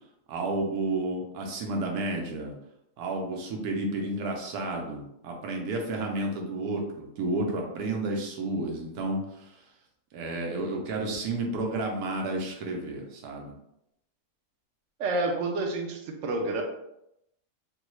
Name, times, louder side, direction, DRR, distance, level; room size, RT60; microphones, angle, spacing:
voice 1, 0.3-2.5 3.0-9.2 10.1-13.5, right 2 dB, 90° right, 1 dB, 1.2 m, -31 dB
voice 2, 15.0-16.6, right 2 dB, 65° right, 1 dB, 0.9 m, -29 dB
3.5 x 2.3 x 3.0 m, 0.81 s
omnidirectional pair, 1.6 m